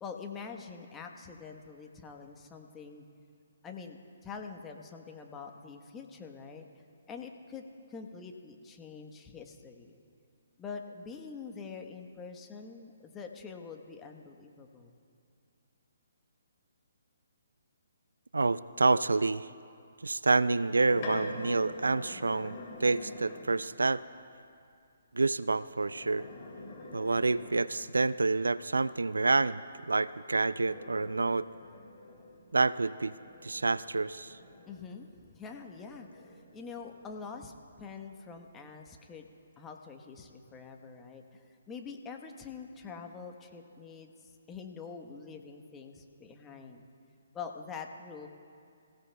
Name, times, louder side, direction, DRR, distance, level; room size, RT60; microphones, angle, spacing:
voice 1, 0.0-3.0 3.6-6.6 7.1-7.6 7.9-9.9 10.6-14.9 34.7-39.3 39.6-46.8 47.3-48.3, left 5 dB, 15° left, 3 dB, 1.1 m, -45 dB
voice 2, 18.3-19.5 20.0-24.0 25.1-26.3 26.9-31.5 32.5-33.1 33.4-34.4, right 3 dB, 80° right, 17 dB, 0.3 m, -28 dB
sound 1, 20.4-23.7 25.7-28.0 30.0-35.2 35.7-37.5, left 2 dB, 35° left, 2.8 m, -45 dB
26.0 x 16.0 x 2.3 m, 2.5 s
figure-of-eight pair, 140°, 0 cm